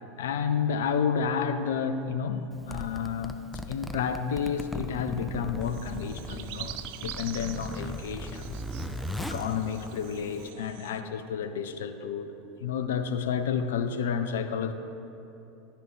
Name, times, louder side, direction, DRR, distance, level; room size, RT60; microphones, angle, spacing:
voice 1, 0.2-3.4 3.7-8.6 9.2-14.7, left 7 dB, 65° left, 10 dB, 0.5 m, -30 dB
Zipper (clothing), 2.5-10.5, left 1 dB, 5° left, 0.6 m, -38 dB
sound 1, 5.6-11.0, right 13 dB, 55° right, 0.3 m, -44 dB
11.5 x 10.0 x 3.2 m, 2.9 s
figure-of-eight pair, 80°, 0 cm